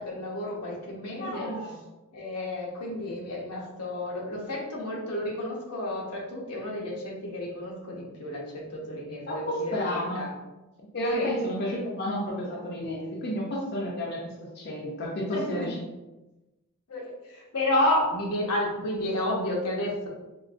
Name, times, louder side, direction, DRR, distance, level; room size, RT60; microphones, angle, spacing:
voice 1, 0.0-1.5 2.1-10.3 11.1-11.3 15.3-15.7 16.9-20.1, left 1 dB, 85° left, -2 dB, 0.8 m, -31 dB
voice 2, 1.2-1.8 9.3-10.2 10.9-15.8, equal, 45° left, -3 dB, 0.5 m, -31 dB
3.8 x 2.5 x 2.5 m, 1.1 s
head